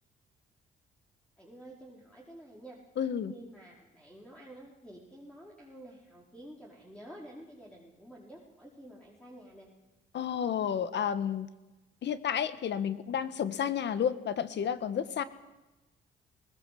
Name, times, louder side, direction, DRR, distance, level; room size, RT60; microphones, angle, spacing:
voice 1, 1.4-2.8 3.3-9.7, right 1 dB, 5° left, -4 dB, 5.1 m, -50 dB
voice 2, 3.0-3.3 10.1-11.5 12.0-15.2, left 8 dB, 60° left, 12 dB, 1.5 m, -31 dB
21.0 x 19.0 x 7.9 m, 1.1 s
cardioid pair, 90°, 20 cm